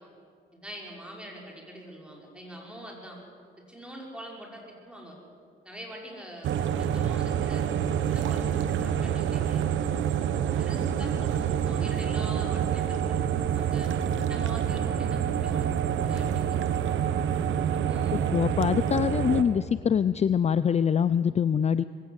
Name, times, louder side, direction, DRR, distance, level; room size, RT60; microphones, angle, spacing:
voice 1, 0.5-3.2 3.7-5.2 5.6-7.7 8.1-10.1 10.6-13.2 13.5-13.9 14.3-16.6 16.8-17.0 17.7-18.2, equal, 5° right, -1 dB, 5.6 m, -44 dB
sound 1, 6.4-19.4, right 9 dB, 75° right, 1.2 m, -27 dB
voice 2, 18.3-21.8, left 7 dB, 35° left, 15 dB, 0.5 m, -24 dB
21.5 x 16.0 x 8.2 m, 2.2 s
cardioid pair, 90°, 20 cm